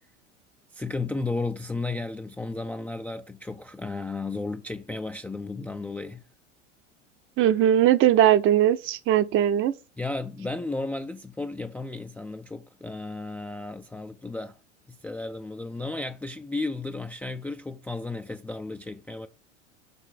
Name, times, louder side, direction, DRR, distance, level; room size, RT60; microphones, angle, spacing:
voice 1, 0.7-6.2 10.0-14.6 14.9-19.3, left 3 dB, 5° left, 0.4 m, -34 dB
voice 2, 7.4-9.7, right 11 dB, 35° right, 0.6 m, -20 dB
6.9 x 4.0 x 5.6 m
figure-of-eight pair, 80°, 36 cm